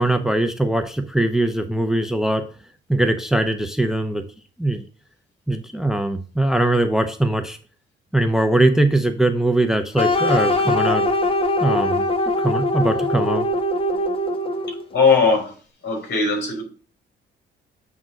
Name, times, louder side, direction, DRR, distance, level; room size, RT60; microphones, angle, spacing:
voice 1, 0.0-2.4 2.9-4.2 4.6-4.8 5.5-7.6 8.1-11.1 11.6-12.0 12.4-13.5, right 1 dB, ahead, 8 dB, 0.7 m, -21 dB
sound 1, 10.0-14.9, left 1 dB, 25° left, 1.2 m, -21 dB
voice 2, 14.9-15.5 15.8-16.6, left 4 dB, 60° left, 2 dB, 3.7 m, -18 dB
7.7 x 3.6 x 6.2 m, 0.40 s
cardioid pair, 90°, 20 cm